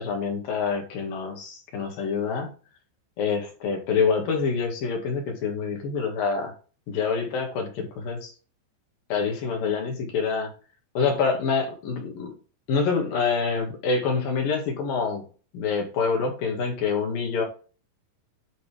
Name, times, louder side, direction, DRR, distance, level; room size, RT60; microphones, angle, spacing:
voice 1, 0.0-2.5 3.2-6.5 6.9-8.3 9.1-10.5 10.9-12.3 12.7-15.2 15.5-17.4, left 5 dB, 55° left, 2 dB, 3.1 m, -26 dB
11.5 x 4.1 x 3.5 m, 0.36 s
omnidirectional pair, 5.4 m